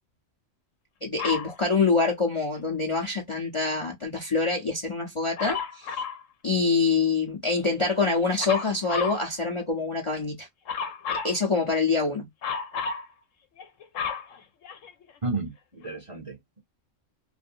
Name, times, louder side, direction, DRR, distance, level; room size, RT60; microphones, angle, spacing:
voice 1, 1.0-5.9 6.4-10.5 11.1-12.3, left 4 dB, 30° left, 0.6 m, -25 dB
Dog, 1.2-1.5 5.4-6.2 8.4-9.2 10.7-11.4 12.4-13.1 13.6-15.1 15.8-15.9, left 6 dB, 90° left, 1.1 m, -32 dB
voice 2, 15.2-16.6, right 3 dB, 30° right, 0.7 m, -33 dB
2.6 x 2.6 x 2.5 m
omnidirectional pair, 1.3 m